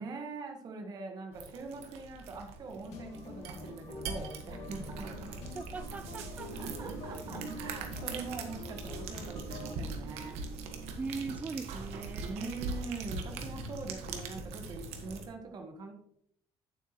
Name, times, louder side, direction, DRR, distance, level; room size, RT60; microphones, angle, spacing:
voice 1, 0.0-5.1 6.5-10.4 12.2-15.9, right 4 dB, 40° right, 1.4 m, -43 dB
sound 1, 1.3-15.2, right 3 dB, 85° right, 1.4 m, -41 dB
sound 2, 2.9-9.8, left 3 dB, 80° left, 2.0 m, -47 dB
voice 2, 5.5-6.5 11.0-12.5, right 4 dB, 15° right, 0.3 m, -40 dB
9.3 x 8.1 x 3.0 m
cardioid pair, 145°, 10 cm